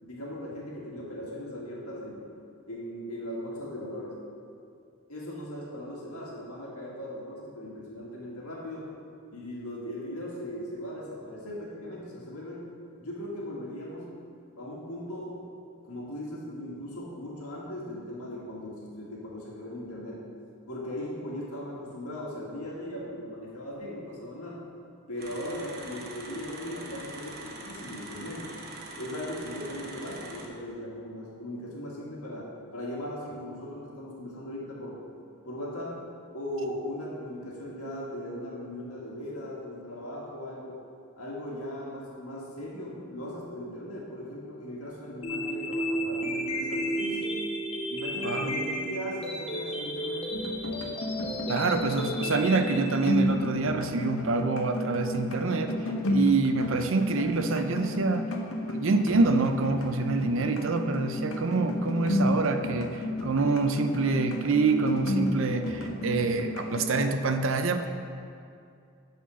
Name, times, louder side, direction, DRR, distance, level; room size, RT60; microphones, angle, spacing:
voice 1, 0.0-2.3 2.7-4.2 5.1-8.9 9.3-12.7 13.0-14.1 14.6-15.4 15.8-20.2 20.7-24.6 25.1-28.5 29.0-35.0 35.4-36.0 36.3-40.8 41.2-47.3 47.9-50.3, left 1 dB, 90° left, -4 dB, 2.0 m, -38 dB
sound 1, 25.2-30.5, right 2 dB, 45° right, 1.0 m, -43 dB
sound 2, 45.2-53.2, equal, 25° left, 0.6 m, -33 dB
sound 3, 50.3-67.1, left 1 dB, 65° left, 0.8 m, -32 dB
voice 2, 51.5-55.7 56.1-58.3 58.7-67.9, right 3 dB, 60° right, 7 dB, 0.5 m, -26 dB
9.2 x 4.3 x 6.2 m, 2.4 s
head